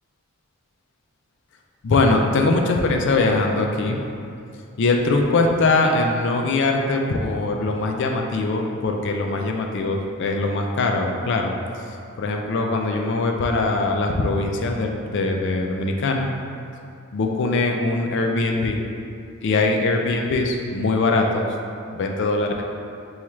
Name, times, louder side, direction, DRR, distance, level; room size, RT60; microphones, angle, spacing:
voice 1, 1.8-4.0 4.8-11.5 12.2-16.3 17.1-18.8 19.4-21.5 21.9-22.6, left 3 dB, 55° left, 2 dB, 0.4 m, -22 dB
5.7 x 2.3 x 3.1 m, 2.5 s
head